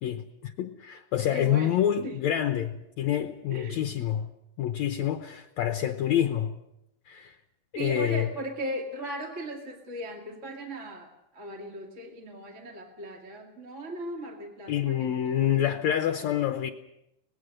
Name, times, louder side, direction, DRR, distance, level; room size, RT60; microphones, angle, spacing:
voice 1, 0.0-4.3 4.6-6.6 7.1-7.4 7.7-8.3 14.7-16.7, left 10 dB, 70° left, 2.0 m, -27 dB
voice 2, 1.3-1.7 2.0-2.2 3.5-3.8 7.7-15.1 15.4-15.6, right 1 dB, 25° right, 2.2 m, -37 dB
25.5 x 19.5 x 6.6 m
omnidirectional pair, 3.8 m